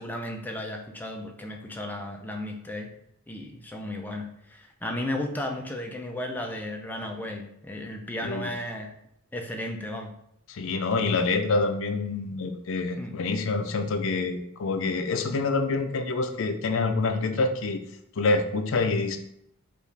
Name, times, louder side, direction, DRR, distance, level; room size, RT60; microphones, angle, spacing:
voice 1, 0.0-2.9 3.3-8.9 9.3-10.1 13.0-13.1, left 1 dB, 10° left, 2 dB, 0.5 m, -34 dB
voice 2, 10.5-17.8 18.2-19.2, left 3 dB, 65° left, 6 dB, 0.5 m, -26 dB
5.0 x 2.5 x 3.3 m, 0.75 s
head